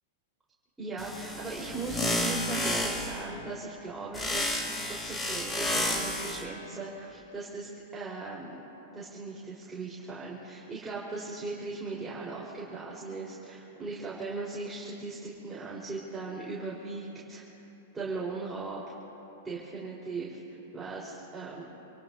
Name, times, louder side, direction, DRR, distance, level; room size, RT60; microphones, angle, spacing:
voice 1, 0.8-4.6 5.0-8.6 8.9-17.4 17.9-18.8 19.4-20.4 20.7-21.6, right 3 dB, 10° right, -7 dB, 4.0 m, -38 dB
sound 1, 1.0-3.2 4.1-6.4, left 1 dB, 15° left, 3.5 m, -31 dB
28.5 x 18.0 x 2.7 m, 3.0 s
hypercardioid pair, 125°, 0 cm